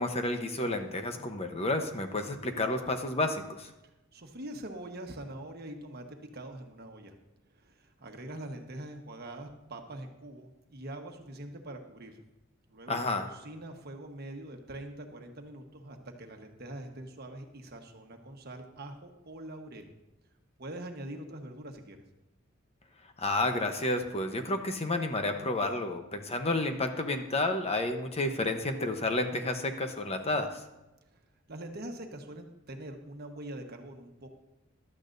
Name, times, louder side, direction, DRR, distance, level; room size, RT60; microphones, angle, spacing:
voice 1, 0.0-3.7 12.9-13.3 23.2-30.6, left 2 dB, 30° left, 6 dB, 0.9 m, -31 dB
voice 2, 4.1-7.1 7.5-12.2 12.7-19.9 20.6-22.0 31.5-34.3, right 1 dB, 50° right, 4 dB, 1.3 m, -43 dB
15.5 x 12.0 x 2.7 m, 0.99 s
head